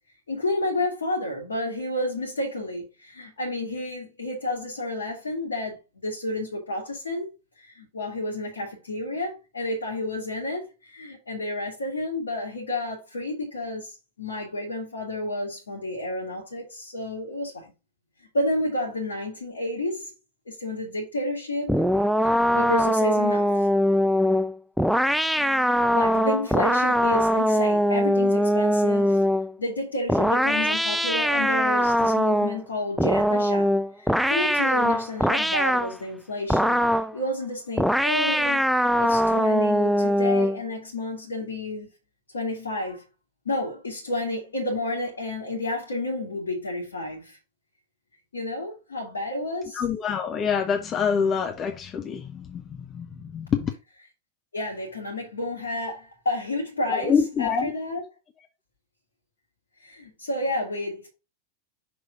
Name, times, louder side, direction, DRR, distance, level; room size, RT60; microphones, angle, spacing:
voice 1, 0.3-7.3 7.6-17.7 18.3-20.1 20.5-21.8 22.2-23.7 25.3-29.2 29.6-38.6 39.0-41.9 42.3-43.0 43.5-47.4 48.3-49.8 54.5-57.1 57.4-58.0 59.8-61.1, left 1 dB, 70° left, 1.8 m, -31 dB
Synthesised Cat Vocals, 21.7-29.5 30.1-32.6 33.0-35.9 36.5-37.1 37.8-40.6, equal, ahead, 0.3 m, -22 dB
voice 2, 49.7-53.7 56.9-57.7, left 6 dB, 25° left, 0.8 m, -26 dB
6.1 x 3.2 x 5.1 m
figure-of-eight pair, 90°, 0 cm